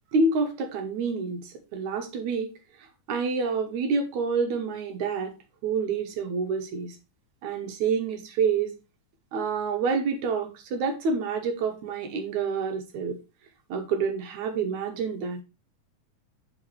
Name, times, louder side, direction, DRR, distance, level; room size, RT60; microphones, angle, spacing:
voice 1, 0.1-2.5 3.1-5.3 5.6-7.0 7.4-8.7 9.3-13.2 13.7-15.4, right 4 dB, 75° right, 4 dB, 2.4 m, -28 dB
6.9 x 5.2 x 3.2 m, 0.27 s
omnidirectional pair, 3.6 m